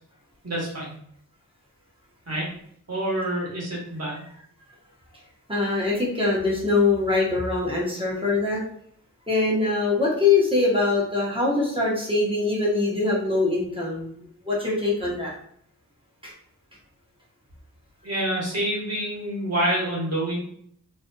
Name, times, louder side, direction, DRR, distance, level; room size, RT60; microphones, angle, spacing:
voice 1, 0.4-0.9 2.3-2.5 2.9-4.2 18.0-20.4, right 1 dB, 50° right, -4 dB, 1.2 m, -27 dB
voice 2, 5.5-8.6 9.3-15.3 16.2-16.3, left 3 dB, 15° right, -5 dB, 0.9 m, -23 dB
2.5 x 2.4 x 2.2 m, 0.65 s
wide cardioid pair, 65°, 32 cm